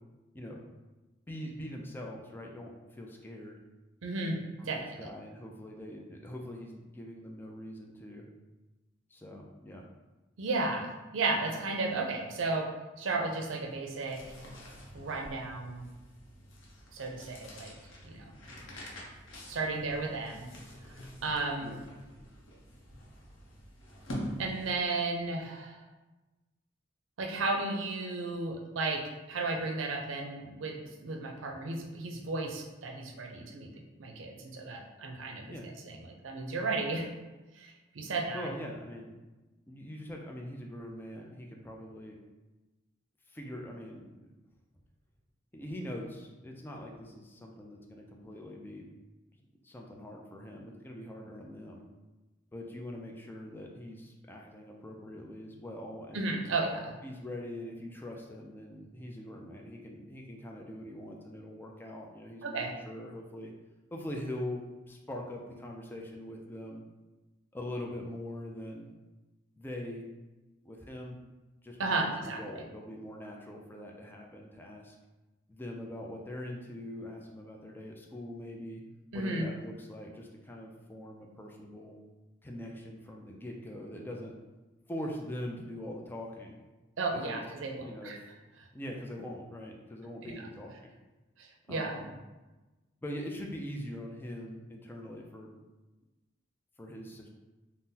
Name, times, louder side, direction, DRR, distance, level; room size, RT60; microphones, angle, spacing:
voice 1, 1.3-3.6 4.6-8.3 9.1-9.8 21.6-21.8 35.5-35.7 38.3-39.1 39.7-42.2 43.3-44.1 45.5-48.9 49.6-51.9 52.5-56.3 57.0-63.5 63.9-66.8 67.5-68.9 69.6-70.0 70.6-71.2 71.6-71.8 72.0-75.0 75.5-78.8 79.1-81.9 82.4-84.3 84.9-86.6 87.2-87.4 87.8-88.2 88.7-90.9 91.7-92.2 93.0-95.5 96.8-97.3, left 1 dB, 10° left, 0 dB, 0.3 m, -42 dB
voice 2, 4.0-4.4 4.6-5.1 10.4-12.7 13.0-14.4 14.9-15.9 16.9-17.7 18.0-18.3 19.5-20.5 21.2-21.7 24.4-25.8 27.2-33.7 34.0-35.5 35.9-36.0 36.2-37.1 37.5-38.5 56.1-57.0 62.4-62.7 71.8-72.6 79.1-79.5 87.0-88.2 90.2-90.3 91.4-91.9, right 3 dB, 75° right, 2 dB, 0.5 m, -34 dB
sound 1, 13.8-25.0, equal, 75° left, 0.6 m, -46 dB
3.7 x 2.0 x 2.7 m, 1.1 s
head